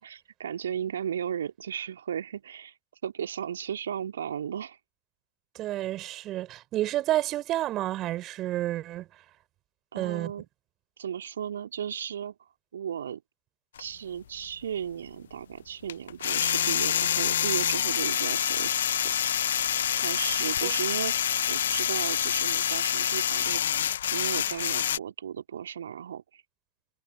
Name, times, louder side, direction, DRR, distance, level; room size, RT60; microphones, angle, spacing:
voice 1, 0.0-2.8 3.0-4.8 9.9-10.4 11.0-12.4 12.7-13.2 13.8-19.1 20.0-23.6 24.1-26.4, right 8 dB, 65° right, 3.7 m, -35 dB
voice 2, 5.5-9.1 9.9-10.3 20.6-20.7, right 14 dB, 35° right, 5.1 m, -30 dB
sound 1, 13.8-13.9 15.9-25.0, left 10 dB, 65° left, 1.2 m, -27 dB
figure-of-eight pair, 90°, 0 cm